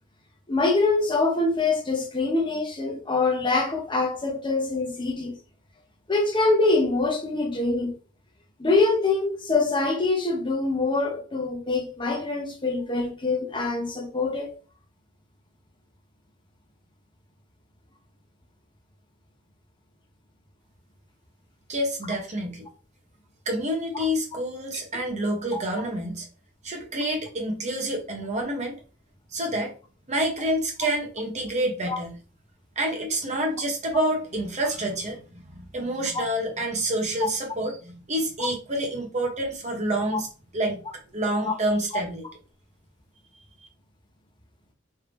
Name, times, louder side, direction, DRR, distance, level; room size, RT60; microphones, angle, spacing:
voice 1, 0.5-5.3 6.1-7.9 8.6-14.5 25.5-25.6 31.9-32.0 37.2-37.3 40.1-40.2 41.4-41.5, left 3 dB, 25° left, 0.8 m, -24 dB
voice 2, 21.7-22.7 23.5-26.3 26.6-28.8 29.3-29.7 30.1-32.2 32.8-40.3 40.5-40.8 41.1-42.3, right 1 dB, 35° right, 1.0 m, -28 dB
3.3 x 2.7 x 3.3 m
head